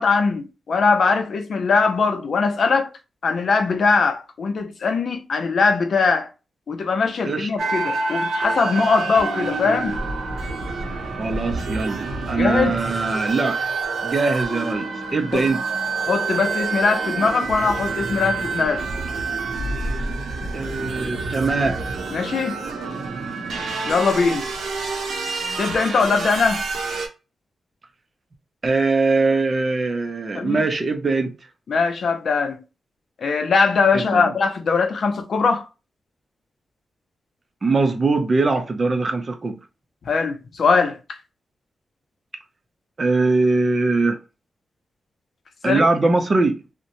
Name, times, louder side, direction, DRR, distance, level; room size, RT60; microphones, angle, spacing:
voice 1, 0.0-2.9 3.2-6.3 6.7-10.0 12.3-12.8 15.3-15.4 16.1-18.8 22.1-22.6 23.8-24.5 25.6-26.6 30.3-30.6 31.7-32.6 33.2-35.7 40.1-41.2 45.6-45.9, left 4 dB, 60° left, 0.5 m, -21 dB
sound 1, 7.6-27.1, right 3 dB, 85° right, 0.7 m, -27 dB
voice 2, 11.2-13.6 14.0-15.6 20.5-21.8 28.6-31.3 33.9-34.3 37.6-39.6 43.0-44.2 45.6-46.6, right 3 dB, 35° right, 0.5 m, -21 dB
2.9 x 2.1 x 2.6 m
wide cardioid pair, 115°, 0 cm